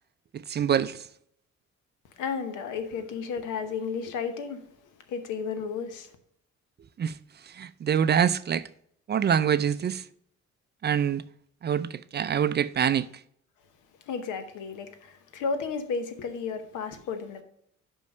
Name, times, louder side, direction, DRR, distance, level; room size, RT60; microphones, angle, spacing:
voice 1, 0.3-1.0 7.0-7.1 7.5-8.6 9.1-10.0 10.8-11.2 11.6-13.1, right 8 dB, 35° right, 0.4 m, -25 dB
voice 2, 2.2-4.6 5.1-6.1 14.1-17.4, left 5 dB, 90° left, 1.0 m, -33 dB
5.4 x 5.3 x 6.4 m
cardioid pair, 90°, 30 cm